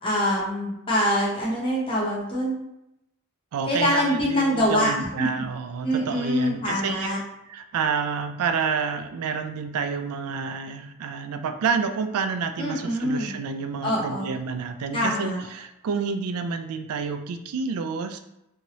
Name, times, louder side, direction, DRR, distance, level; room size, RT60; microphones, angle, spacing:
voice 1, 0.0-2.5 3.7-4.9 5.2-5.4 5.8-7.2 12.6-13.3 13.8-14.3 14.9-15.4, equal, 25° left, -6 dB, 0.7 m, -24 dB
voice 2, 3.5-7.2 7.5-18.2, right 5 dB, 75° right, 8 dB, 0.3 m, -29 dB
2.8 x 2.6 x 3.0 m, 0.86 s
head